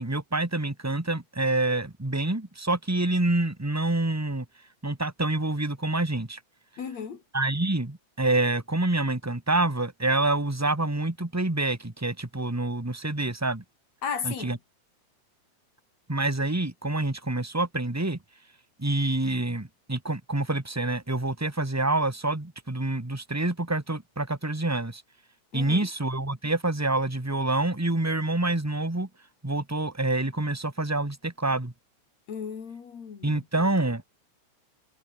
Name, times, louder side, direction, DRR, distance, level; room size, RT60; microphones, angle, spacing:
voice 1, 0.0-4.4 4.8-6.4 7.3-13.6 14.2-14.6 16.1-18.2 18.8-25.0 25.5-29.1 29.4-31.7 33.2-34.0, right 2 dB, 10° right, 1.1 m, -27 dB
voice 2, 6.8-7.2 14.0-14.6 25.5-25.9 32.3-33.4, left 6 dB, 65° left, 4.0 m, -35 dB
omnidirectional pair, 3.3 m